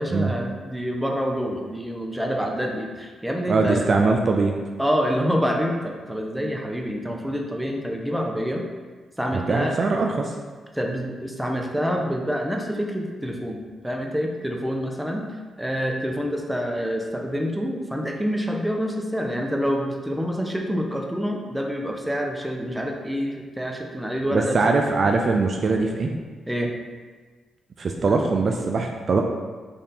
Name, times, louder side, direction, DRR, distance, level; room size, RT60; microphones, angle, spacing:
voice 1, 0.0-3.9 4.8-8.6 9.2-9.7 10.7-15.3 15.6-24.6 26.5-26.7, equal, 5° right, 1 dB, 0.6 m, -27 dB
voice 2, 3.5-4.6 9.3-10.3 24.3-26.1 27.8-29.2, right 3 dB, 55° right, 2 dB, 0.3 m, -22 dB
3.4 x 2.6 x 4.0 m, 1.4 s
supercardioid pair, 55°, 0 cm